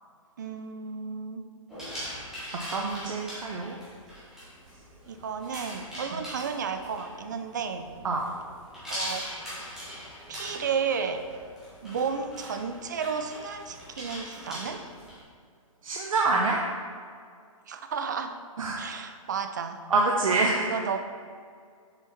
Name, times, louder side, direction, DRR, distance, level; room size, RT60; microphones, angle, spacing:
voice 1, 0.4-1.4 5.1-7.9 8.9-9.2 10.3-11.2 11.8-14.8 17.7-18.4 18.8-19.8 20.6-21.0, right 6 dB, 35° right, 8 dB, 0.4 m, -32 dB
sound 1, 1.7-15.2, equal, 5° right, 1.3 m, -41 dB
voice 2, 2.7-3.8 8.0-8.2 15.8-16.6 18.6-18.8 19.9-20.7, right 3 dB, 70° right, -1 dB, 0.8 m, -26 dB
6.5 x 4.9 x 4.3 m, 2.1 s
hypercardioid pair, 170°, 18 cm